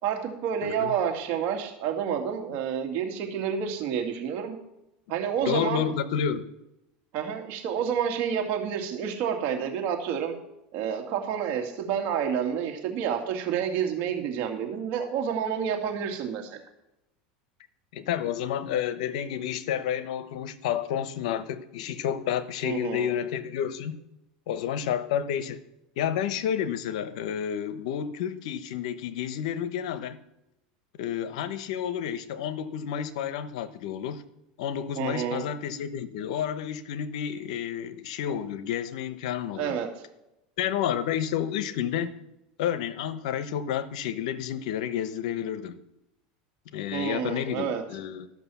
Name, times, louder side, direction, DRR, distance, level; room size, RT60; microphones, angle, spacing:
voice 1, 0.0-4.6 5.1-5.9 7.1-10.3 10.7-16.6 22.6-23.1 35.0-35.4 39.6-39.9 46.9-47.8, right 8 dB, 55° right, 2.3 m, -29 dB
voice 2, 0.6-0.9 5.4-6.5 17.9-24.0 24.5-25.6 26.0-30.2 31.0-34.2 34.6-39.8 40.6-42.2 42.6-45.8 46.7-48.3, left 9 dB, 75° left, 0.9 m, -30 dB
13.0 x 6.0 x 7.1 m
supercardioid pair, 120°, 4 cm